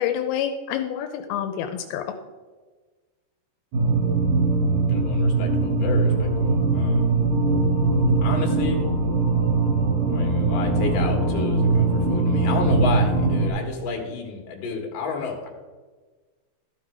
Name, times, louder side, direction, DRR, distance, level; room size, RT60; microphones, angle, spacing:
voice 1, 0.0-2.1, left 9 dB, 85° left, 5 dB, 2.6 m, -27 dB
sound 1, 3.7-13.5, right 3 dB, 60° right, 3.0 m, -21 dB
voice 2, 4.9-7.2 8.2-8.8 10.1-15.5, left 5 dB, 60° left, 1 dB, 3.3 m, -31 dB
13.0 x 7.7 x 4.7 m, 1.4 s
omnidirectional pair, 4.4 m